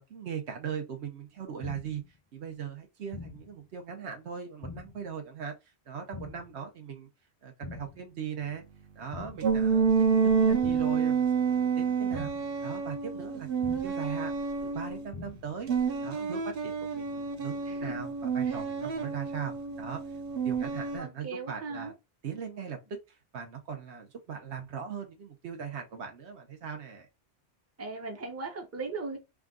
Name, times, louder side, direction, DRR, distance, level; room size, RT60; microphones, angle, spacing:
voice 1, 0.0-2.0 2.3-5.5 5.9-7.1 7.4-8.6 8.9-12.3 12.6-14.3 14.6-15.7 16.0-20.0 20.4-21.9 22.2-22.8 23.1-27.1, right 7 dB, 85° right, 1.1 m, -39 dB
sound 1, 1.6-2.1 3.1-3.6 4.6-5.1 6.1-6.6 7.6-8.1 9.1-9.6 10.6-11.1 12.1-12.6 13.6-14.1 15.1-15.6, left 5 dB, 55° left, 0.3 m, -44 dB
sound 2, 9.4-15.1 15.7-21.0, right 5 dB, 65° right, 0.9 m, -29 dB
voice 2, 17.7-18.0 18.5-18.6 21.0-21.9 27.8-29.2, right 4 dB, 15° right, 0.6 m, -38 dB
3.6 x 2.4 x 3.6 m
omnidirectional pair, 1.1 m